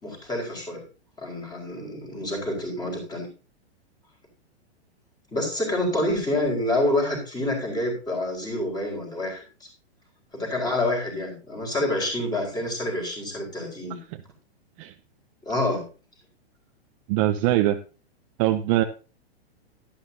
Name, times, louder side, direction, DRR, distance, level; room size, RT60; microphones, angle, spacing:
voice 1, 0.0-0.8 1.2-3.3 5.3-9.7 10.3-14.0 15.4-15.8, left 1 dB, 10° left, 0 dB, 4.6 m, -27 dB
voice 2, 17.1-17.8 18.4-18.8, right 14 dB, 30° right, 7 dB, 0.6 m, -22 dB
11.5 x 11.0 x 2.8 m, 0.34 s
hypercardioid pair, 145°, 33 cm